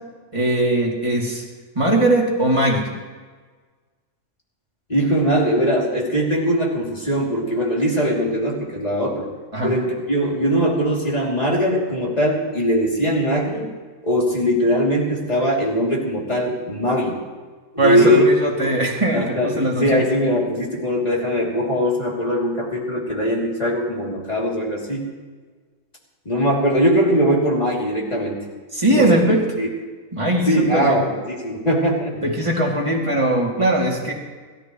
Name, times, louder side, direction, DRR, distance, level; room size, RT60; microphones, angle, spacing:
voice 1, 0.3-1.4 1.7-2.9 9.5-9.7 17.8-20.0 28.7-29.4 30.1-31.0 32.2-34.1, right 1 dB, 20° right, -3 dB, 2.9 m, -20 dB
voice 2, 4.9-9.3 9.6-13.7 14.0-17.2 17.7-18.3 18.6-18.7 19.1-25.1 26.2-28.4 28.9-29.2 29.6-29.7 30.5-32.2, equal, 30° left, -3 dB, 3.1 m, -21 dB
29.5 x 13.5 x 3.2 m, 1.4 s
omnidirectional pair, 1.4 m